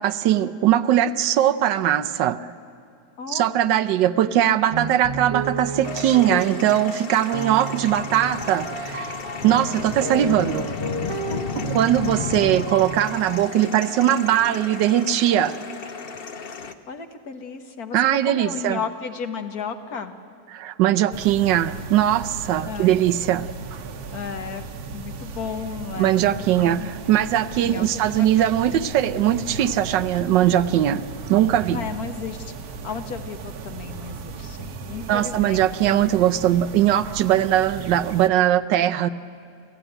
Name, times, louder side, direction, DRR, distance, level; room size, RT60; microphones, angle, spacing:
voice 1, 0.0-2.4 3.3-9.1 9.4-10.7 11.7-15.6 17.9-18.8 20.5-23.5 26.0-31.0 31.3-31.8 35.1-39.1, right 11 dB, 80° right, 12 dB, 1.4 m, -20 dB
voice 2, 3.2-3.5 11.3-11.6 16.9-20.1 22.6-22.9 24.1-26.9 27.6-28.8 31.7-36.1, left 6 dB, 60° left, 7 dB, 1.6 m, -34 dB
sound 1, 4.7-6.9 7.3-13.5, right 4 dB, 35° right, 0.5 m, -32 dB
sound 2, 5.8-16.7, left 6 dB, 40° left, 0.9 m, -34 dB
sound 3, 21.1-38.3, right 4 dB, 65° right, 1.4 m, -36 dB
28.0 x 15.5 x 9.0 m, 2.6 s
omnidirectional pair, 1.9 m